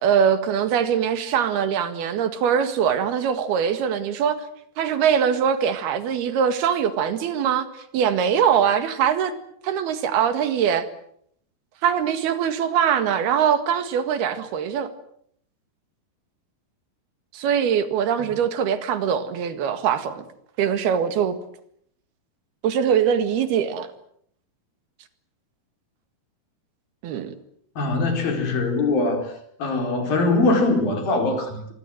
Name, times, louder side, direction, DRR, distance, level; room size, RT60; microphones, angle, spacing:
voice 1, 0.0-4.4 4.8-7.7 7.9-9.3 9.6-10.9 11.8-14.9 17.3-20.3 20.6-21.4 22.6-23.9 27.0-27.3, right 8 dB, 85° right, 3.8 m, -22 dB
voice 2, 27.8-29.3 29.6-31.8, left 2 dB, 65° left, 6.4 m, -22 dB
25.0 x 24.5 x 7.9 m
omnidirectional pair, 4.4 m